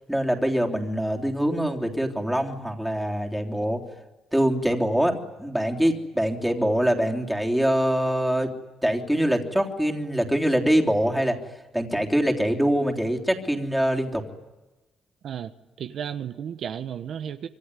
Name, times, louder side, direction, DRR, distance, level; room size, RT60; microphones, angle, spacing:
voice 1, 0.1-3.8 4.3-8.5 8.8-11.4 11.7-14.2, equal, 5° right, 3.4 m, -24 dB
voice 2, 15.8-17.5, right 8 dB, 65° right, 1.1 m, -33 dB
26.0 x 23.0 x 9.9 m
cardioid pair, 90°, 0 cm